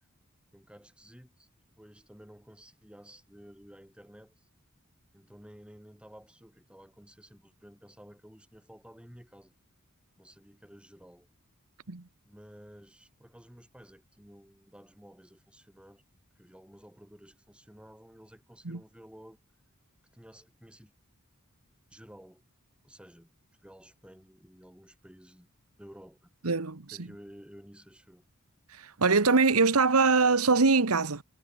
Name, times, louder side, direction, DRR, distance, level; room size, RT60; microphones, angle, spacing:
voice 1, 0.5-1.5 1.8-4.5 5.1-9.6 10.2-11.3 12.2-16.0 16.4-19.4 20.1-20.9 21.9-22.4 22.8-23.3 23.6-25.5 25.8-26.3 26.9-28.3, equal, 5° right, 6.3 m, -53 dB
voice 2, 26.4-27.1 28.7-31.2, right 4 dB, 75° right, 1.3 m, -23 dB
head